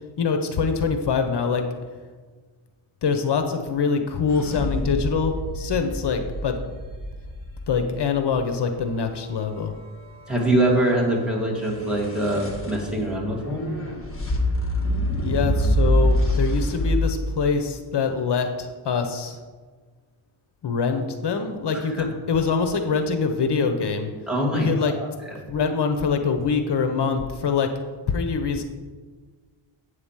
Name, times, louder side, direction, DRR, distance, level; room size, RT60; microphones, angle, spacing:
voice 1, 0.2-1.6 3.0-6.6 7.7-9.7 15.2-19.4 20.6-24.1 24.5-25.0 25.5-27.7 28.1-28.6, left 5 dB, 55° left, 6 dB, 0.9 m, -24 dB
sound 1, 4.3-8.4 11.7-17.0, equal, 25° left, 1.5 m, -26 dB
voice 2, 10.3-13.7 22.0-22.1 24.3-25.1, right 1 dB, ahead, -3 dB, 2.0 m, -23 dB
8.2 x 4.9 x 7.3 m, 1.5 s
wide cardioid pair, 110°, 47 cm